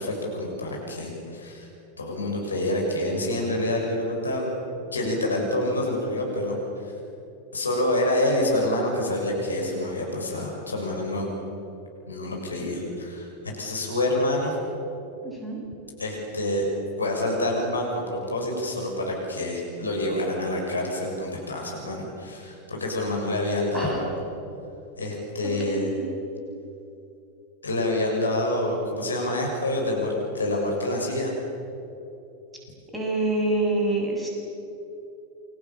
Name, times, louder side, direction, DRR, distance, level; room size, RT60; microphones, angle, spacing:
voice 1, 0.0-1.7 2.0-4.5 4.9-6.6 6.8-6.9 7.5-11.3 12.1-14.5 16.0-16.6 17.0-24.2 25.0-25.9 27.6-31.3, left 1 dB, 75° left, 0 dB, 6.6 m, -27 dB
voice 2, 15.2-15.6 23.7-24.0 25.6-26.1 32.9-34.3, right 2 dB, 5° right, -2 dB, 7.3 m, -26 dB
29.0 x 24.5 x 7.4 m, 2.9 s
figure-of-eight pair, 90°, 0 cm